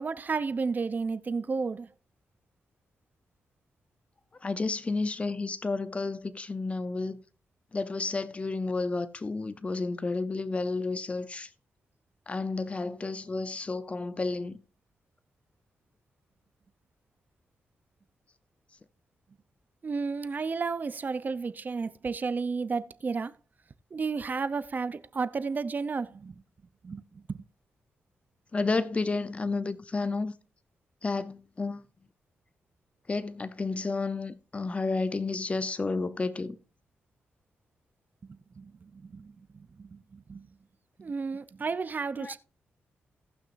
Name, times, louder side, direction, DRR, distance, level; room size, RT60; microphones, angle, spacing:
voice 1, 0.0-1.9 19.8-23.3 23.9-26.3 26.8-27.4 38.2-40.5 41.0-42.4, right 4 dB, 40° right, 0.7 m, -32 dB
voice 2, 4.4-7.2 7.7-11.5 12.3-14.6 28.5-30.3 31.0-31.9 33.1-36.6 42.2-42.3, left 3 dB, 30° left, 0.7 m, -31 dB
18.0 x 6.0 x 2.6 m
cardioid pair, 90°, 4 cm